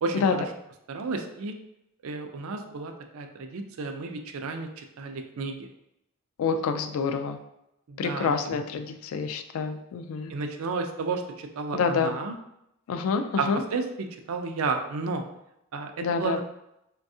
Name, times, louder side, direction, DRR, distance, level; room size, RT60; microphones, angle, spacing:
voice 1, 0.0-0.4 0.9-1.6 2.0-5.7 7.9-8.5 10.3-12.4 13.4-13.8 14.3-15.2 15.7-16.4, right 4 dB, 80° right, 5 dB, 0.4 m, -32 dB
voice 2, 6.4-7.4 8.0-10.3 11.7-12.2 12.9-13.6 16.0-16.4, left 5 dB, 75° left, 9 dB, 0.3 m, -27 dB
3.3 x 2.2 x 2.6 m, 0.82 s
head